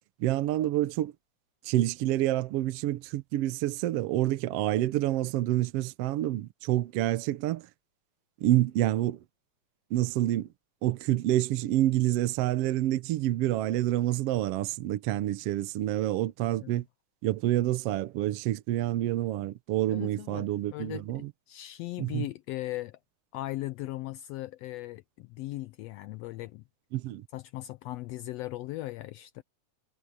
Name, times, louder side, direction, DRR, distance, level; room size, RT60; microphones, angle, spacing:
voice 1, 0.2-1.1 1.6-7.7 8.4-9.2 9.9-10.5 10.8-16.8 17.2-21.3 22.0-22.3 26.9-27.2, right 14 dB, 75° right, 1.5 m, -28 dB
voice 2, 19.9-23.0 23.3-26.6 27.3-29.4, left 17 dB, 85° left, 1.5 m, -38 dB
omnidirectional pair, 3.5 m